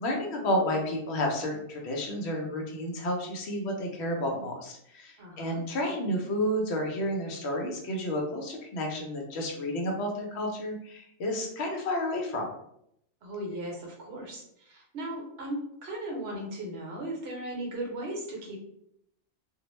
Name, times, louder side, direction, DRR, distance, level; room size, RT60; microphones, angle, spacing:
voice 1, 0.0-12.5, left 1 dB, 70° left, 1 dB, 0.8 m, -31 dB
voice 2, 5.2-5.6 13.2-18.6, right 1 dB, 65° right, -1 dB, 0.9 m, -37 dB
2.3 x 2.0 x 3.0 m, 0.74 s
omnidirectional pair, 1.2 m